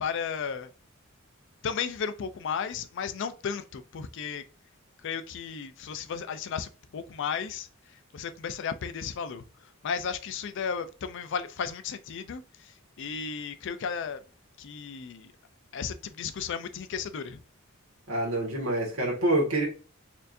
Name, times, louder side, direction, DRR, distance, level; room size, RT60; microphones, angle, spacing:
voice 1, 0.0-0.7 1.6-4.4 5.0-7.7 8.1-9.4 9.8-12.4 13.0-14.2 14.6-15.3 15.7-17.4, left 6 dB, 60° left, 0.4 m, -34 dB
voice 2, 18.1-19.7, right 1 dB, 85° right, 1.5 m, -26 dB
4.4 x 2.6 x 2.6 m
head